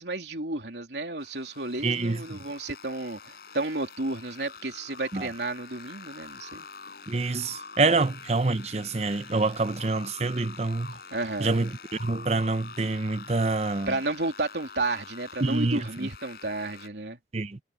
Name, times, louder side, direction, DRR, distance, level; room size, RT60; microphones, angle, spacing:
voice 1, 0.0-6.7 11.1-11.6 13.9-17.2, right 2 dB, 80° right, 3.2 m, -32 dB
sound 1, 1.2-16.9, left 5 dB, 60° left, 5.1 m, -46 dB
voice 2, 1.8-2.4 5.1-5.3 7.1-11.0 11.4-13.9 15.4-16.1 17.3-17.6, right 3 dB, 40° right, 0.7 m, -27 dB
head